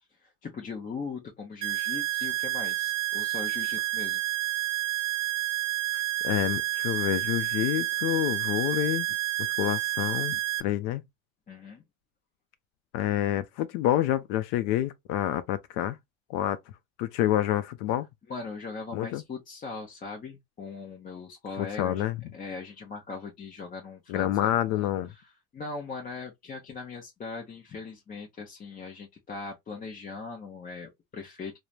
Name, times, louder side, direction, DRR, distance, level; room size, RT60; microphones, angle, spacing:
voice 1, 0.2-4.2 11.5-11.8 18.3-22.0 22.3-25.3 25.5-31.6, left 4 dB, 25° left, 0.6 m, -40 dB
sound 1, 1.6-10.6, right 16 dB, 75° right, 0.5 m, -29 dB
voice 2, 5.9-9.1 9.6-11.0 12.9-16.0 16.3-16.6 17.0-18.1 18.9-19.2 21.6-22.2 24.1-25.1, left 13 dB, 75° left, 0.5 m, -28 dB
3.1 x 2.0 x 2.2 m
cardioid pair, 120°, 37 cm